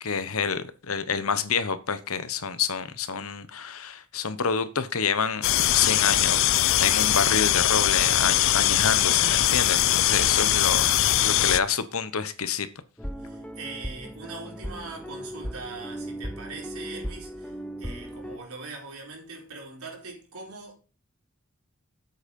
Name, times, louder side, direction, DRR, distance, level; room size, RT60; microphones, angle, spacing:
voice 1, 0.0-5.5 5.7-6.4 6.8-10.8 11.2-12.7, left 6 dB, 75° left, 1.1 m, -27 dB
sound 1, 5.4-11.6, left 12 dB, 60° left, 0.6 m, -21 dB
sound 2, 13.0-18.4, equal, 5° left, 0.8 m, -37 dB
voice 2, 13.2-20.8, right 3 dB, 90° right, 4.4 m, -41 dB
8.4 x 8.1 x 5.4 m
head